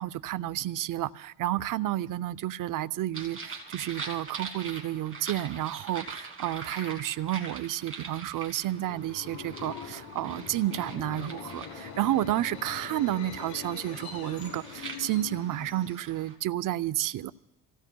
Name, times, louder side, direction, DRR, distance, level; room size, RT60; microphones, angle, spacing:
voice 1, 0.0-17.3, right 13 dB, 55° right, 0.6 m, -31 dB
sound 1, 3.1-16.4, right 4 dB, 30° right, 2.6 m, -44 dB
Subway metro underground, 8.6-16.4, left 7 dB, 70° left, 1.7 m, -43 dB
27.5 x 16.5 x 2.3 m
supercardioid pair, 70°, 40 cm